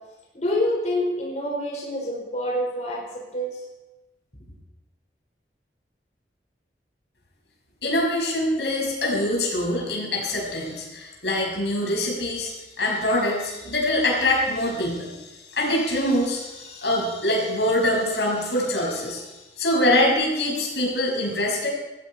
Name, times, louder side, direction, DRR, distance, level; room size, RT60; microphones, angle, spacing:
voice 1, 0.3-3.6, left 1 dB, 40° left, -3 dB, 5.0 m, -27 dB
voice 2, 7.8-19.3 19.6-21.7, left 1 dB, 75° left, -1 dB, 6.1 m, -24 dB
19.5 x 15.0 x 4.4 m, 1.0 s
head